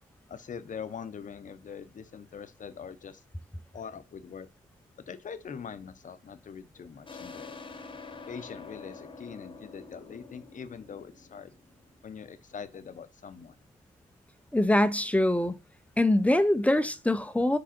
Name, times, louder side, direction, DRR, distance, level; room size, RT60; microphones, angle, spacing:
voice 1, 0.3-3.2 3.7-4.5 5.1-7.6 8.3-11.5 12.0-13.6, left 6 dB, 60° left, 0.7 m, -43 dB
sound 1, 7.1-12.4, left 4 dB, 35° left, 1.0 m, -47 dB
voice 2, 14.5-15.6 16.0-17.6, left 1 dB, 10° left, 0.5 m, -24 dB
5.0 x 4.8 x 4.2 m
wide cardioid pair, 125°, 15 cm